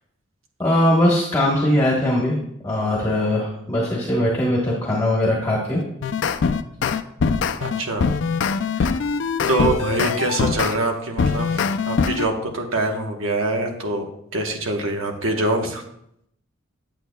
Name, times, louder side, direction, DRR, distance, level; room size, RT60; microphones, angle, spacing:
voice 1, 0.6-2.3 2.6-5.8, left 1 dB, 10° left, -5 dB, 1.1 m, -20 dB
sound 1, 5.8-10.8 11.2-12.3, left 5 dB, 65° left, 0.4 m, -22 dB
voice 2, 7.6-8.0 8.8-8.9 9.5-15.8, right 2 dB, 90° right, 3 dB, 1.1 m, -24 dB
8.9 x 8.1 x 2.2 m, 0.75 s
head